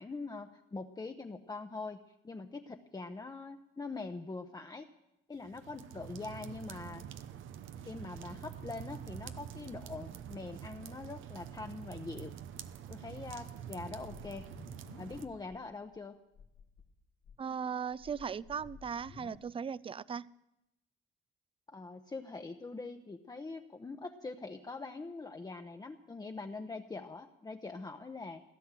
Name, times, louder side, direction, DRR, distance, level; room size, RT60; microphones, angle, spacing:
voice 1, 0.0-2.0 2.2-4.9 5.3-7.0 7.9-12.3 12.9-14.5 15.0-16.2 21.7-28.4, left 3 dB, 20° left, 4 dB, 0.9 m, -43 dB
sound 1, 5.4-15.3, right 9 dB, 80° right, 0.9 m, -47 dB
sound 2, 13.7-15.6 15.9-16.0 16.3-16.8 17.2-19.4, left 5 dB, 80° left, 2.1 m, -54 dB
voice 2, 17.4-20.3, right 7 dB, 25° right, 20 dB, 0.4 m, -38 dB
16.5 x 10.5 x 7.5 m, 0.88 s
cardioid pair, 90°, 20 cm